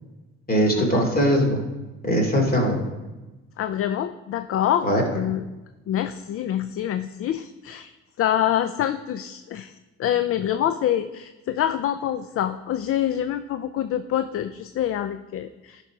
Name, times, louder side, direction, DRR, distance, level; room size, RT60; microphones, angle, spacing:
voice 1, 0.5-1.6 2.0-2.8 4.8-5.0, equal, 25° left, 1 dB, 2.8 m, -20 dB
voice 2, 3.6-5.4 5.9-7.9 8.2-9.7 10.0-15.8, left 11 dB, 40° left, 11 dB, 0.5 m, -26 dB
10.5 x 4.4 x 5.1 m, 1.1 s
hypercardioid pair, 70°, 35 cm